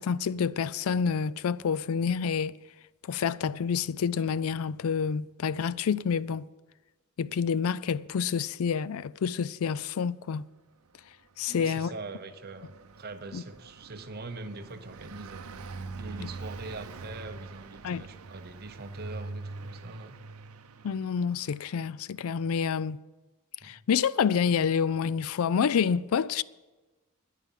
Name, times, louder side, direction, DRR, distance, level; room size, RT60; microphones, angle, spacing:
voice 1, 0.0-2.5 3.1-6.4 7.2-10.4 11.4-11.9 13.3-13.4 16.2-16.3 17.8-18.0 20.8-23.0 23.6-26.4, left 6 dB, 70° left, 0.4 m, -28 dB
Car passing by, 10.9-21.9, right 3 dB, 75° right, 0.7 m, -44 dB
voice 2, 11.5-15.4 15.9-20.2 23.6-23.8, right 3 dB, 45° right, 0.9 m, -43 dB
10.5 x 9.1 x 9.1 m
head